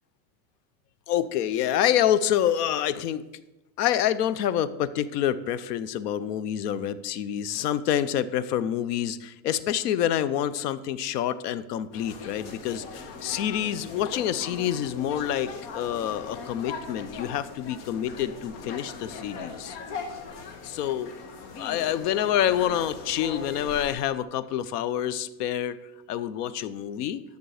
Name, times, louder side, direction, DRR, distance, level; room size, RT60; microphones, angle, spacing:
voice 1, 1.1-3.2 3.8-19.8 20.6-21.1 21.6-25.8 26.1-27.2, left 10 dB, 90° left, 15 dB, 0.8 m, -27 dB
sound 1, 11.9-23.9, left 4 dB, 50° left, 1.4 m, -40 dB
10.5 x 6.8 x 4.9 m, 0.99 s
supercardioid pair, 175°, 46 cm